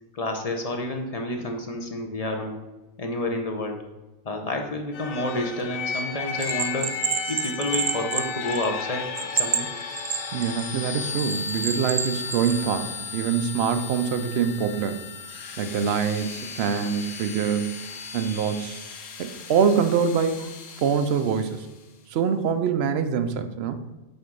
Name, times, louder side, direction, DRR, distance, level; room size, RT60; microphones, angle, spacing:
voice 1, 0.1-2.6 3.0-3.8 4.2-7.0 7.3-9.7, left 1 dB, 35° left, 3 dB, 0.7 m, -29 dB
sound 1, 4.9-21.7, left 5 dB, 85° left, 1.2 m, -35 dB
Bell, 6.4-8.8 9.2-10.7 11.2-12.6, right 8 dB, 80° right, 1.1 m, -28 dB
voice 2, 10.3-15.1 15.6-17.9 18.1-18.8 19.2-21.7 22.1-23.8, right 7 dB, 65° right, 9 dB, 0.7 m, -25 dB
7.9 x 3.6 x 5.3 m, 1.1 s
omnidirectional pair, 1.3 m